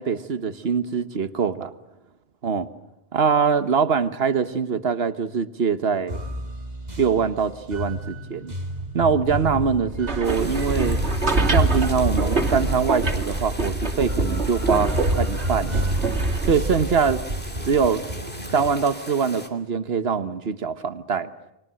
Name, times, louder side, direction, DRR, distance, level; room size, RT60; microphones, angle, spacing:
voice 1, 0.0-1.7 2.4-2.7 3.1-6.2 7.0-8.5 8.9-11.0 11.5-15.8 16.4-17.2 17.6-18.0 18.5-21.3, right 6 dB, 65° right, 12 dB, 1.5 m, -23 dB
sound 1, 6.1-18.8, equal, 40° right, 2.4 m, -33 dB
sound 2, 9.8-17.9, right 2 dB, 85° right, 3.1 m, -24 dB
sound 3, 10.2-19.5, equal, 10° left, 2.4 m, -39 dB
30.0 x 24.0 x 7.7 m, 0.88 s
omnidirectional pair, 1.1 m